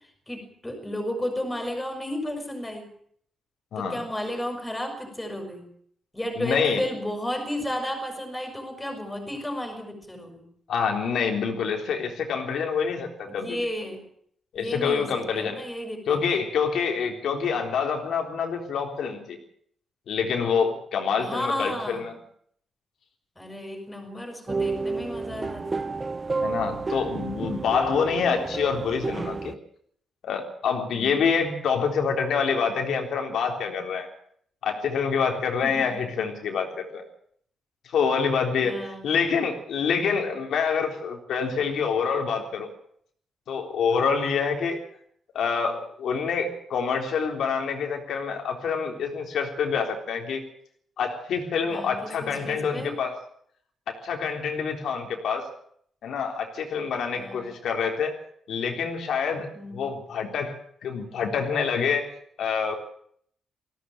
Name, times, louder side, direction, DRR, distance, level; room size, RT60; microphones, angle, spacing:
voice 1, 0.3-2.9 3.8-5.7 6.1-10.5 13.3-14.0 14.5-16.4 21.2-22.0 23.4-25.9 30.9-31.3 35.6-36.0 38.6-39.1 51.7-52.9 57.2-57.5 59.5-59.8, left 1 dB, 10° left, 4 dB, 6.3 m, -33 dB
voice 2, 6.4-6.8 10.7-13.6 14.5-15.6 16.1-19.4 20.1-22.1 26.4-29.6 30.2-34.1 34.6-37.0 37.8-42.7 43.5-44.8 45.3-50.4 51.0-53.2 53.9-55.5 56.0-58.2 58.5-60.6 60.8-62.1 62.4-62.7, left 6 dB, 70° left, 3 dB, 3.7 m, -26 dB
sound 1, 24.5-29.5, right 3 dB, 20° right, 0.9 m, -31 dB
19.5 x 16.5 x 8.9 m, 0.64 s
wide cardioid pair, 175°, 0 cm